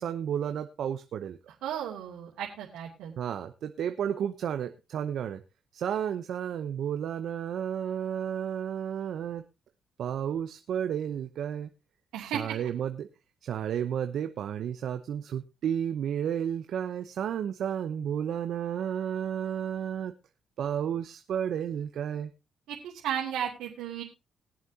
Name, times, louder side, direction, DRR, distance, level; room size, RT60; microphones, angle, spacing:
voice 1, 0.0-1.4 3.2-5.4 5.7-9.4 10.0-11.7 12.3-13.1 13.4-20.1 20.6-22.3, right 9 dB, 70° right, 9 dB, 0.8 m, -32 dB
voice 2, 1.6-3.1 12.1-12.5 22.7-24.0, right 9 dB, 85° right, -4 dB, 2.8 m, -34 dB
21.5 x 7.5 x 2.8 m, 0.26 s
cardioid pair, 90°, 0 cm